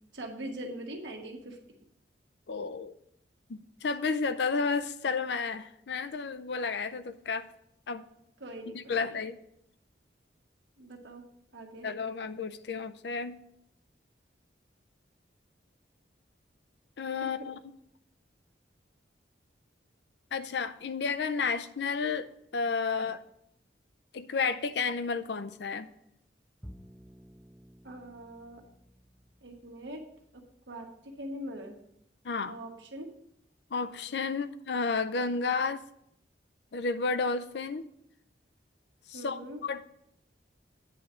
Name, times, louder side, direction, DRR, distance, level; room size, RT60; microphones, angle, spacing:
voice 1, 0.1-1.8 8.4-9.2 10.8-11.2 11.5-11.9 27.8-28.6 29.4-30.0 30.3-31.8 32.5-33.1 39.1-39.6, right 1 dB, 85° right, 2 dB, 1.3 m, -42 dB
voice 2, 2.5-3.0 3.5-7.5 7.9-8.0 8.7-9.4 11.8-13.4 17.0-17.6 20.3-23.2 24.1-25.9 32.2-32.6 33.7-35.8 36.7-37.9 39.1-39.8, left 4 dB, 70° left, 11 dB, 0.5 m, -32 dB
Bowed string instrument, 26.6-33.1, equal, ahead, 0.3 m, -56 dB
9.2 x 3.7 x 7.0 m, 0.75 s
head